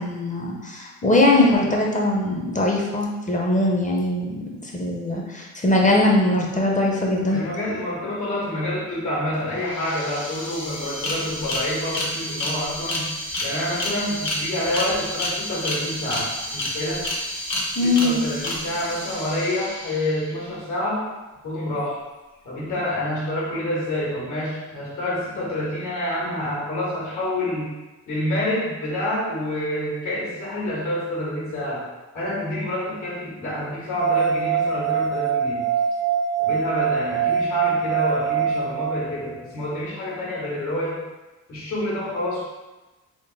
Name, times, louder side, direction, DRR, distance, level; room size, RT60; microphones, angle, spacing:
voice 1, 0.0-7.4 17.8-18.2, left 2 dB, 25° left, -1 dB, 0.6 m, -21 dB
voice 2, 7.3-13.1 13.4-17.0 17.8-21.1 21.4-22.0 22.4-27.7 28.1-31.9 32.1-35.6 36.4-41.0 41.5-42.4, left 1 dB, 70° left, -7 dB, 1.5 m, -27 dB
sound 1, 9.3-9.4 9.6-20.4, left 1 dB, 55° left, 0.9 m, -30 dB
sound 2, 34.0-39.5, right 7 dB, 55° right, 0.4 m, -24 dB
3.6 x 2.1 x 3.9 m, 1.1 s
wide cardioid pair, 115°, 31 cm